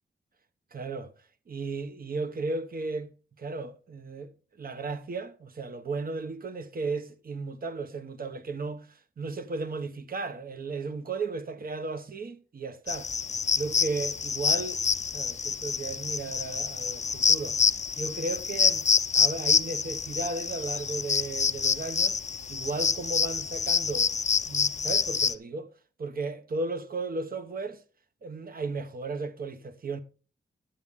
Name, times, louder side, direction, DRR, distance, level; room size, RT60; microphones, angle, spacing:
voice 1, 0.7-1.1 1.5-3.1 3.4-4.3 4.6-13.1 13.6-14.8 15.1-17.6 18.0-18.9 19.1-22.2 22.5-24.1 24.4-25.7 26.0-27.8 28.2-30.0, right 3 dB, 50° right, 1.0 m, -35 dB
sound 1, 12.9-25.3, left 6 dB, 40° left, 0.5 m, -27 dB
11.5 x 8.5 x 3.7 m
cardioid pair, 85°, 19 cm